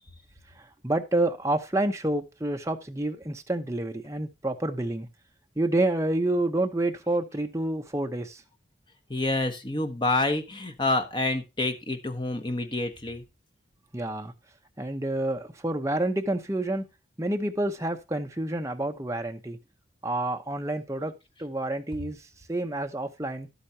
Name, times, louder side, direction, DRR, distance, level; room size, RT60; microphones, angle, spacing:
voice 1, 0.8-5.1 5.6-8.4 13.9-14.3 14.8-16.8 17.2-19.6 20.0-21.1 21.4-22.2 22.5-23.5, right 1 dB, 15° right, 0.9 m, -28 dB
voice 2, 9.1-13.2, left 2 dB, 25° left, 1.1 m, -28 dB
11.5 x 8.2 x 2.8 m
head